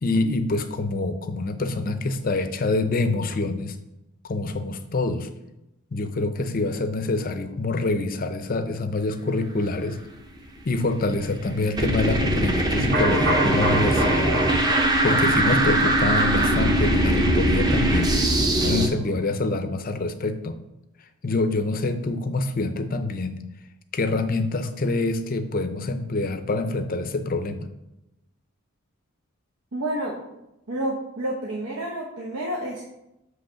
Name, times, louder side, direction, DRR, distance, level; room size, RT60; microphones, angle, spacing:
voice 1, 0.0-3.8 4.2-5.3 5.9-10.0 10.7-14.4 15.0-18.2 18.6-20.6 21.2-23.4 23.9-27.7, left 2 dB, 40° left, 9 dB, 0.5 m, -26 dB
sound 1, 10.8-18.9, right 1 dB, 20° right, 0.7 m, -21 dB
sound 2, 12.9-18.8 19.1-19.2, right 1 dB, 40° right, 1.4 m, -29 dB
voice 2, 29.7-30.2 30.7-32.8, right 1 dB, 75° right, -2 dB, 1.0 m, -29 dB
7.8 x 3.2 x 5.7 m, 0.91 s
head